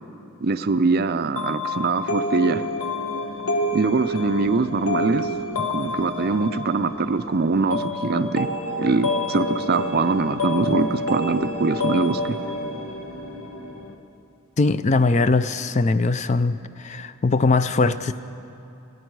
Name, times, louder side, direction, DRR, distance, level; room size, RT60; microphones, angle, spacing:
voice 1, 0.4-2.6 3.7-5.3 5.6-8.5 8.8-12.4, right 4 dB, 45° right, 11 dB, 0.4 m, -23 dB
sound 1, 1.4-13.9, left 1 dB, 75° left, 1.2 m, -28 dB
voice 2, 14.6-18.3, left 3 dB, 30° left, 13 dB, 0.4 m, -21 dB
27.0 x 9.8 x 4.7 m, 2.7 s
head